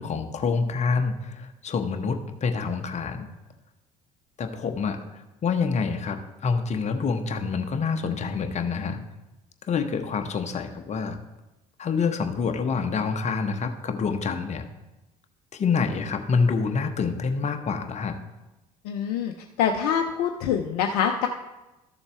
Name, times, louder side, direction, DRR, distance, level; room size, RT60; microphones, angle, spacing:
voice 1, 0.0-3.3 4.4-5.0 5.4-9.0 9.7-11.2 11.8-14.6 15.5-18.2, left 5 dB, 35° left, 6 dB, 1.1 m, -27 dB
voice 2, 18.8-19.3 19.6-21.3, left 8 dB, 65° left, 4 dB, 0.6 m, -25 dB
12.5 x 7.0 x 3.3 m, 1.0 s
figure-of-eight pair, 55°, 19 cm